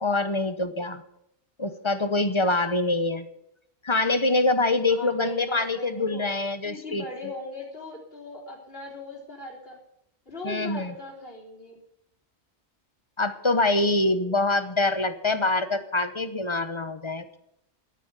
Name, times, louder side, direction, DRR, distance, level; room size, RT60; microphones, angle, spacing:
voice 1, 0.0-1.0 1.6-3.3 3.8-7.3 10.4-10.9 13.2-17.4, left 2 dB, 30° left, 11 dB, 0.9 m, -25 dB
voice 2, 4.9-6.3 6.6-9.8 10.3-11.7 13.8-14.4, left 2 dB, 55° left, -3 dB, 4.0 m, -40 dB
12.5 x 9.0 x 8.2 m, 0.77 s
omnidirectional pair, 1.2 m